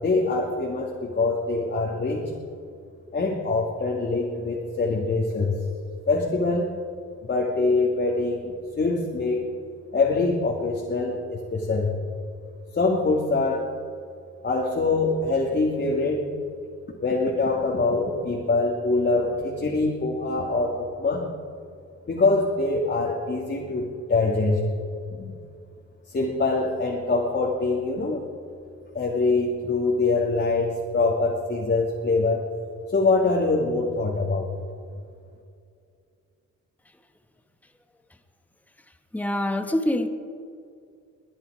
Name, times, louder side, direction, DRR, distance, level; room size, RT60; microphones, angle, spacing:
voice 1, 0.0-2.2 3.1-5.6 6.1-6.8 7.2-9.4 9.9-12.0 12.7-13.7 14.4-16.2 17.0-21.3 22.1-24.6 25.1-25.3 26.1-28.3 28.9-34.7, left 3 dB, 35° left, -1 dB, 2.2 m, -24 dB
voice 2, 39.1-40.1, left 1 dB, 5° left, 7 dB, 1.2 m, -25 dB
22.5 x 10.5 x 4.9 m, 2.3 s
cardioid pair, 90°, 30 cm